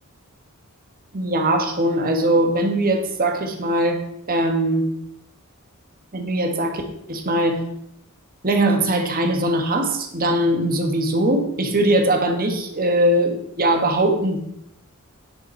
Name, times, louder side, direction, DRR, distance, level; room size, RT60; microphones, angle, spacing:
voice 1, 1.1-4.0 4.3-4.9 6.1-6.8 7.1-7.6 8.4-14.4, right 1 dB, 45° right, 5 dB, 1.6 m, -20 dB
10.5 x 8.0 x 4.6 m, 0.76 s
head